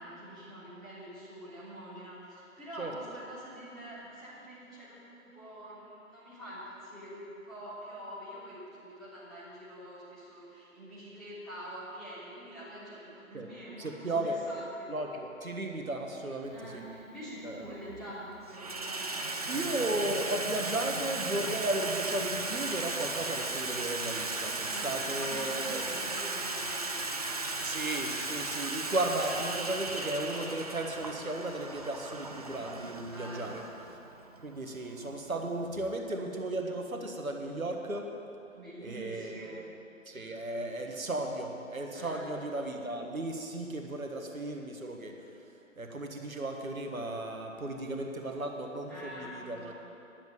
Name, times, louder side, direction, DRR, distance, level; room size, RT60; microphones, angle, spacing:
voice 1, 0.0-14.9 16.5-19.3 24.6-27.8 33.1-33.6 38.5-39.6 41.9-42.3 48.9-49.7, equal, ahead, -14 dB, 3.4 m, -46 dB
voice 2, 13.8-14.4 14.9-16.8 17.4-17.7 19.5-26.1 27.6-33.6 34.4-38.2 38.8-39.8 40.1-45.2 45.8-49.7, right 1 dB, 85° right, 3 dB, 1.5 m, -35 dB
Water tap faucet / Sink (filling or washing), 16.6-16.7 17.6-18.0 18.3-35.9, right 3 dB, 30° right, 0.5 m, -36 dB
10.5 x 7.3 x 9.3 m, 2.8 s
figure-of-eight pair, 145°, 41 cm